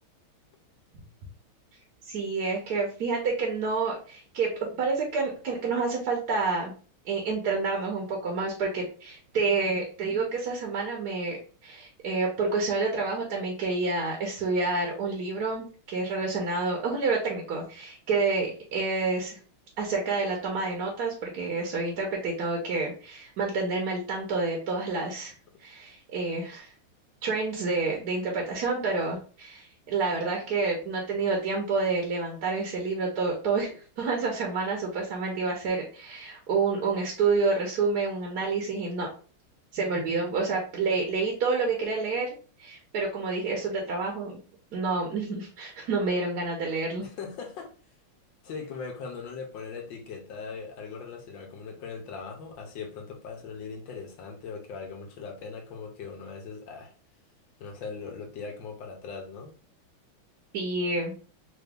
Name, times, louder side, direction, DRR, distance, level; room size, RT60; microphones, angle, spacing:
voice 1, 2.0-6.7 7.0-11.4 11.6-19.4 19.8-25.3 25.6-26.7 27.2-39.1 39.7-42.3 42.6-44.4 44.7-47.1 60.5-61.1, right 4 dB, 60° right, 1.2 m, -28 dB
voice 2, 47.0-47.7 48.4-56.9 57.6-59.5, left 5 dB, 65° left, 1.5 m, -40 dB
3.9 x 2.7 x 3.4 m
omnidirectional pair, 2.3 m